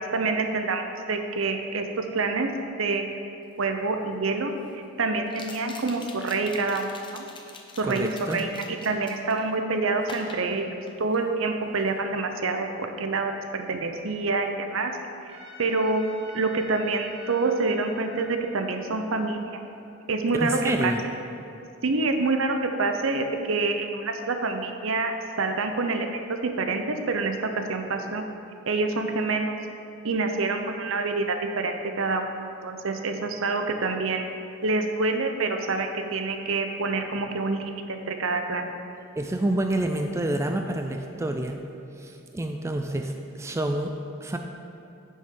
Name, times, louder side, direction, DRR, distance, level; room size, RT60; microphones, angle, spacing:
voice 1, 0.0-2.5 2.8-3.1 3.6-7.3 7.8-8.5 8.8-14.9 15.3-16.0 16.3-19.6 20.1-20.9 21.8-28.2 28.7-29.5 30.0-34.3 34.6-38.7, right 3 dB, 70° right, 6 dB, 0.7 m, -27 dB
sound 1, 3.6-3.7 5.3-9.5 10.0-11.3 11.6-12.0, left 3 dB, 25° left, 0.7 m, -44 dB
voice 2, 7.8-8.4 20.4-21.0 39.2-41.6 42.0-43.9 44.2-44.4, right 1 dB, 15° right, 4 dB, 0.3 m, -28 dB
Trumpet, 15.3-20.5, left 2 dB, 30° right, 1.4 m, -48 dB
10.0 x 6.3 x 3.8 m, 2.8 s
head